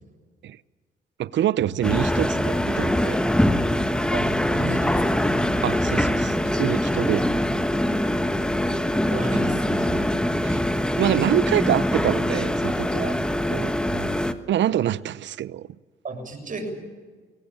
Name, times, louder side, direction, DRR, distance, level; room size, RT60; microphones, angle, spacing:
voice 1, 1.2-3.2 5.6-6.3 6.6-7.3 10.4-10.6 11.0-13.2 13.5-13.7 14.5-15.7, right 11 dB, 65° right, 0.7 m, -25 dB
sound 1, 1.8-14.3, left 1 dB, 5° left, 1.4 m, -23 dB
voice 2, 4.1-5.3 7.1-7.3 9.1-10.1 13.9-14.2 16.0-16.7, right 1 dB, 40° right, 7.2 m, -33 dB
22.5 x 18.5 x 8.8 m
cardioid pair, 90°, 20 cm